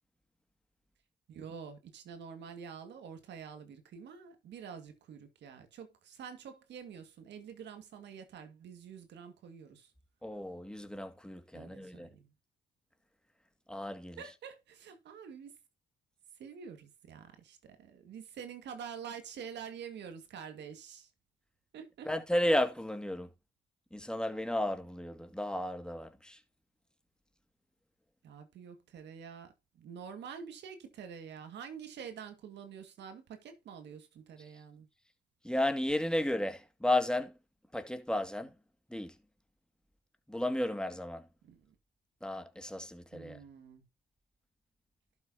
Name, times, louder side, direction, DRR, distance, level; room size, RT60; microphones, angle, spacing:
voice 1, 1.3-9.9 11.5-12.3 14.2-15.5 16.4-21.1 21.7-22.1 28.2-34.9 41.4-41.8 43.1-43.8, right 7 dB, 75° right, 2.0 m, -47 dB
voice 2, 10.2-12.1 13.7-14.2 22.1-23.3 23.9-26.4 35.4-37.4 37.7-38.5 38.9-39.1 40.3-41.3 42.2-43.4, left 1 dB, 5° left, 2.1 m, -33 dB
12.0 x 6.7 x 2.8 m
supercardioid pair, 60°, 18 cm